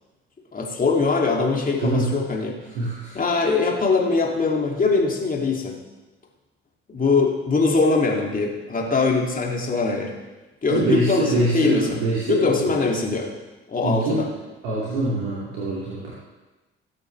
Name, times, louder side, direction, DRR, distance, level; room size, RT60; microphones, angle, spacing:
voice 1, 0.5-2.6 3.1-5.8 6.9-10.1 10.6-12.0 12.3-13.3 13.7-14.3, left 4 dB, 30° left, -1 dB, 2.8 m, -22 dB
voice 2, 1.8-2.1 2.7-3.1 10.7-12.7 13.8-14.3 14.6-16.1, right 2 dB, 70° right, -7 dB, 2.8 m, -24 dB
19.5 x 8.5 x 3.4 m, 1.1 s
figure-of-eight pair, 50°, 29 cm